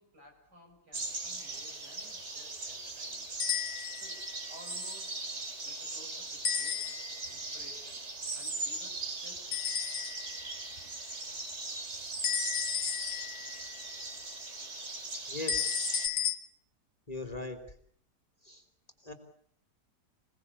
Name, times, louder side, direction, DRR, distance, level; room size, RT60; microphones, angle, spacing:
voice 1, 0.0-3.4 4.0-5.2 5.6-8.0 8.3-10.3, equal, 75° right, 2 dB, 7.2 m, -57 dB
sound 1, 0.9-16.1, right 3 dB, 40° right, 2.6 m, -39 dB
sound 2, 3.4-4.2 6.4-7.3 9.5-10.4 12.2-13.7 15.5-16.4, left 8 dB, 75° left, 2.0 m, -33 dB
voice 2, 15.3-16.1 17.1-17.6 18.4-18.6 19.0-19.1, left 2 dB, 20° left, 5 dB, 3.0 m, -39 dB
27.0 x 18.5 x 8.4 m, 0.64 s
omnidirectional pair, 1.8 m